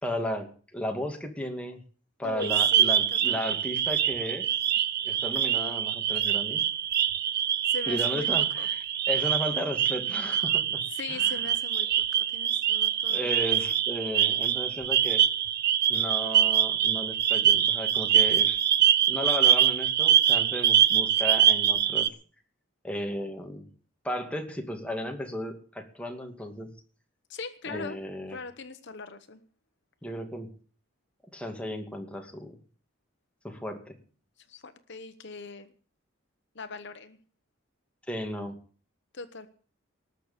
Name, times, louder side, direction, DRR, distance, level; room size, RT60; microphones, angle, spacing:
voice 1, 0.0-1.8 2.2-4.5 5.0-6.6 7.9-10.8 11.1-11.4 13.1-15.2 15.9-18.6 19.1-22.1 22.8-23.7 24.0-26.7 27.7-28.4 30.0-30.5 31.3-32.5 33.4-33.9 38.1-38.6, equal, 5° left, 3 dB, 2.3 m, -34 dB
voice 2, 2.2-3.5 7.7-8.3 8.6-8.7 10.9-13.5 27.3-28.0 28.3-29.4 34.4-35.7 36.5-37.2 39.1-39.5, left 4 dB, 55° left, 10 dB, 1.0 m, -40 dB
sound 1, 2.4-22.1, right 9 dB, 50° right, 0.7 m, -24 dB
19.5 x 6.6 x 8.7 m, 0.42 s
head